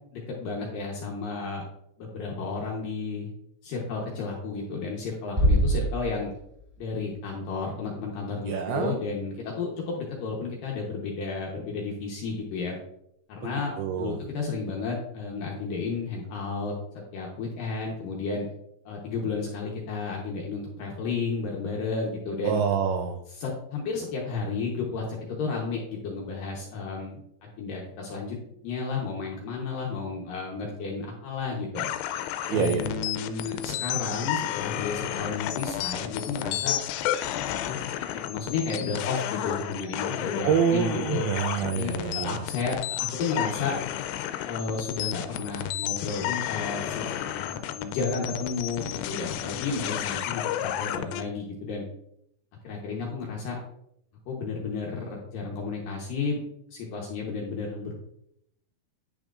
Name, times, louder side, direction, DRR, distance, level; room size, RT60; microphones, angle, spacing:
voice 1, 0.1-1.6 2.0-3.3 3.6-6.3 6.8-12.8 13.3-16.7 17.1-18.5 18.9-22.6 23.3-28.4 28.6-31.8 32.5-36.8 37.6-37.8 38.3-41.2 41.7-43.7 44.4-51.8 52.6-53.6 54.3-56.4 56.7-57.9, left 4 dB, 70° left, -1 dB, 2.2 m, -32 dB
Bass drum, 5.4-6.8, right 1 dB, 15° right, 1.0 m, -24 dB
voice 2, 8.5-9.0 13.8-14.2 22.4-23.2 32.5-32.9 40.4-42.4, right 7 dB, 85° right, 4 dB, 2.2 m, -26 dB
sound 1, 31.8-51.2, left 12 dB, 85° left, 2.8 m, -32 dB
10.0 x 6.2 x 2.4 m, 0.76 s
omnidirectional pair, 5.1 m